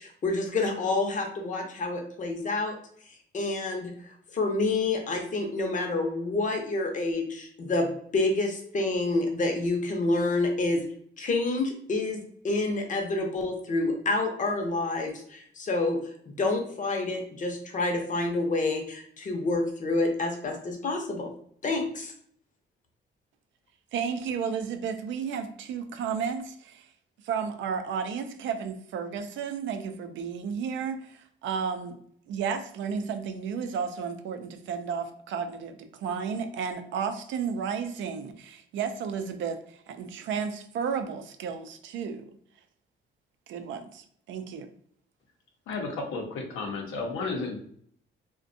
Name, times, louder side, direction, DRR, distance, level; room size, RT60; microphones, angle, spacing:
voice 1, 0.0-2.8 3.3-3.9 4.3-10.8 11.2-12.2 12.4-16.0 16.3-21.3 21.6-22.1, left 2 dB, 40° left, 3 dB, 0.6 m, -28 dB
voice 2, 23.9-26.9 27.2-32.0 32.3-42.3 43.5-44.7, right 6 dB, 75° right, 8 dB, 0.4 m, -33 dB
voice 3, 45.7-47.6, left 3 dB, 90° left, 2 dB, 0.6 m, -33 dB
2.5 x 2.2 x 2.5 m, 0.62 s
cardioid pair, 90°, 20 cm